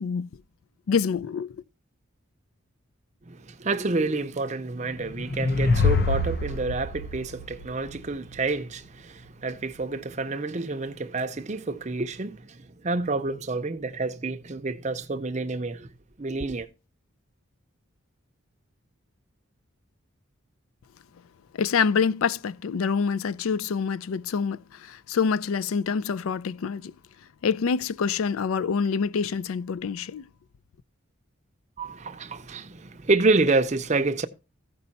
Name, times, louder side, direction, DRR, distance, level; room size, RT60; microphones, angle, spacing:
voice 1, 0.9-1.6 21.6-26.9 27.4-30.3, left 6 dB, 85° left, 0.4 m, -26 dB
voice 2, 3.3-15.9 16.2-16.7 31.8-34.3, right 3 dB, 35° right, 0.6 m, -28 dB
sound 1, 4.9-8.3, left 3 dB, 45° left, 0.8 m, -25 dB
15.0 x 5.4 x 4.1 m
head